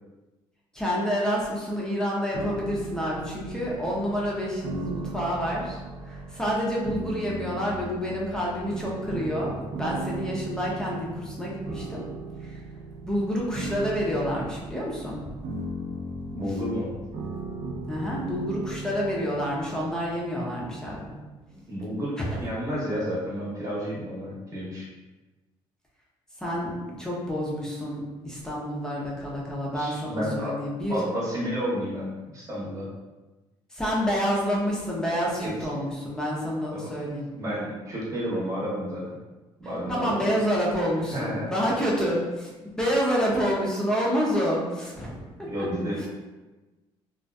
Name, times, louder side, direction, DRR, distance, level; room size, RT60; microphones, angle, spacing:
voice 1, 0.7-12.0 12.4-12.6 13.0-15.2 17.9-21.2 22.2-22.4 26.4-31.0 33.7-37.2 39.9-45.7 46.0-46.1, equal, 5° left, -5 dB, 0.5 m, -28 dB
sound 1, 2.3-21.3, right 2 dB, 75° right, 0.4 m, -37 dB
voice 2, 16.3-16.9 21.5-24.9 29.7-30.6 30.9-32.9 35.4-35.5 36.7-36.9 37.3-39.0 39.6-40.2 41.1-41.5 45.4-46.1, equal, 30° right, -6 dB, 0.9 m, -31 dB
2.5 x 2.4 x 2.2 m, 1.2 s
cardioid pair, 125°, 10 cm